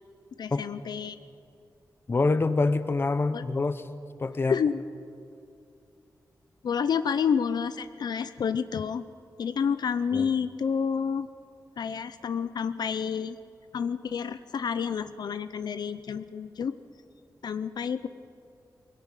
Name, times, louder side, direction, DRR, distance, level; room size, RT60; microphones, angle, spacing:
voice 1, 0.4-1.2 3.3-3.4 4.4-4.8 6.6-9.1 9.4-11.3 11.8-13.4 13.7-16.8 17.4-18.1, left 7 dB, 75° left, 12 dB, 0.6 m, -29 dB
voice 2, 2.1-3.9 4.2-4.6 10.1-10.3, left 3 dB, 30° left, 12 dB, 0.9 m, -26 dB
21.5 x 18.0 x 9.1 m, 2.5 s
wide cardioid pair, 150°, 7 cm